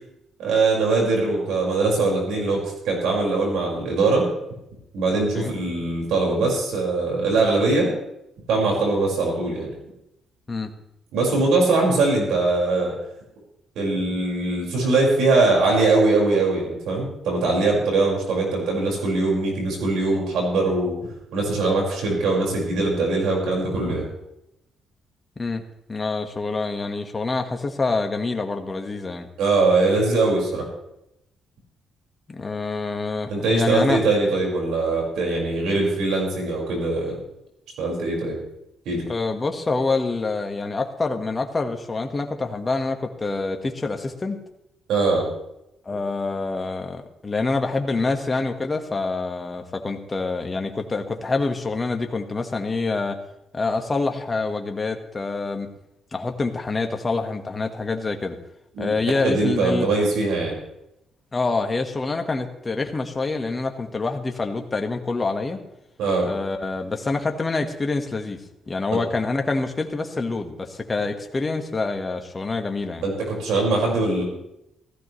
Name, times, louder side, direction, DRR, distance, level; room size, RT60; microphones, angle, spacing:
voice 1, 0.4-4.3 4.9-7.9 8.5-9.7 11.1-12.9 13.8-20.9 21.3-24.1 29.4-30.7 33.3-37.2 37.8-38.4 38.9-39.0 44.9-45.2 58.8-58.9 59.2-60.6 66.0-66.3 73.0-73.1 73.4-74.2, right 3 dB, 80° right, -1 dB, 5.5 m, -21 dB
voice 2, 25.9-29.3 32.3-34.0 39.1-44.4 45.8-53.2 53.5-55.7 56.1-58.4 58.8-59.9 61.3-65.6 66.2-73.1, left 3 dB, 25° left, 5 dB, 1.6 m, -26 dB
16.5 x 15.0 x 3.3 m, 0.84 s
cardioid pair, 90°, 0 cm